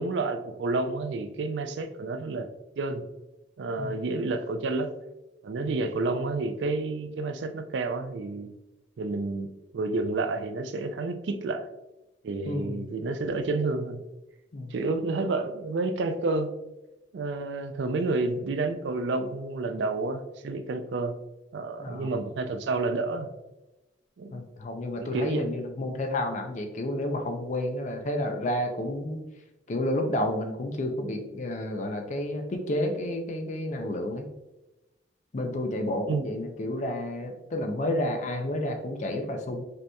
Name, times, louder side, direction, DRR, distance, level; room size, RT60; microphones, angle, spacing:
voice 1, 0.0-2.5 2.8-3.0 3.6-4.9 5.4-8.5 9.0-9.5 9.7-11.7 12.2-14.0 14.7-16.5 17.1-21.1 21.5-23.3 24.2-24.4 25.1-25.5 36.1-36.3, right 3 dB, 70° right, 9 dB, 0.4 m, -30 dB
voice 2, 12.5-12.9 14.5-14.7 21.8-22.1 24.3-29.2 29.7-34.3 35.3-39.6, left 1 dB, 40° left, 4 dB, 0.5 m, -30 dB
5.2 x 2.9 x 2.2 m, 0.99 s
head